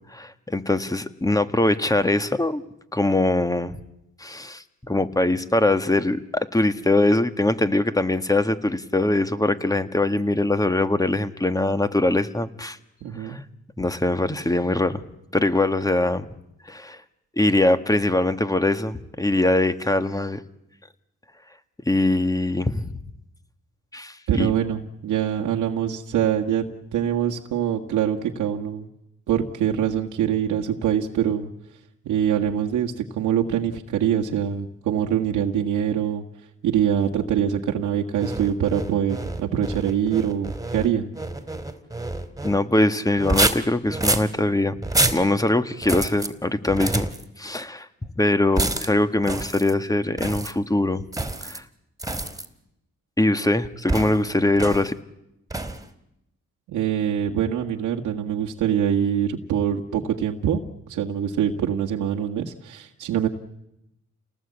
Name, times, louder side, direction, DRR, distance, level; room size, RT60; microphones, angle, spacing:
voice 1, 0.1-2.6 2.9-3.8 4.2-12.8 13.2-13.4 13.8-15.0 15.3-16.3 16.7-17.0 17.4-20.4 21.9-22.9 23.9-24.5 42.4-44.8 45.1-47.1 47.4-47.9 48.2-51.0 51.4-51.6 53.2-54.9, left 2 dB, 10° left, 10 dB, 1.8 m, -22 dB
voice 2, 13.0-13.4 24.3-26.6 26.9-28.9 29.3-31.5 32.1-36.2 36.6-41.1 56.7-63.3, right 9 dB, 90° right, 1 dB, 1.8 m, -24 dB
sound 1, 38.1-42.6 43.2-44.3 44.8-45.2 45.8-46.3 46.7-47.2 48.6-48.9 49.2-49.7 50.2-50.5 51.1-51.6 52.0-52.4 53.9-54.2 54.6-54.9 55.5-55.8, right 2 dB, 10° right, 2.7 m, -27 dB
29.5 x 19.0 x 8.5 m, 0.87 s
cardioid pair, 70°, 30 cm